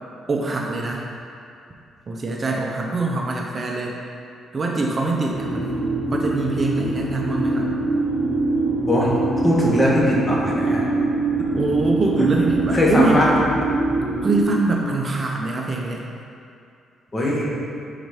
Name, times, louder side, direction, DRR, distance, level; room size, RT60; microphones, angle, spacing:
voice 1, 0.3-1.0 2.1-4.0 4.5-7.8 11.5-13.2 14.2-16.0, right 3 dB, 35° right, -1 dB, 0.6 m, -24 dB
sound 1, 5.3-14.4, right 2 dB, 65° right, 1.2 m, -23 dB
voice 2, 8.9-9.2 9.4-10.8 12.2-12.3 12.7-13.3 17.1-17.5, left 1 dB, 25° left, -5 dB, 1.4 m, -20 dB
5.1 x 4.0 x 4.8 m, 2.5 s
cardioid pair, 90°, 0 cm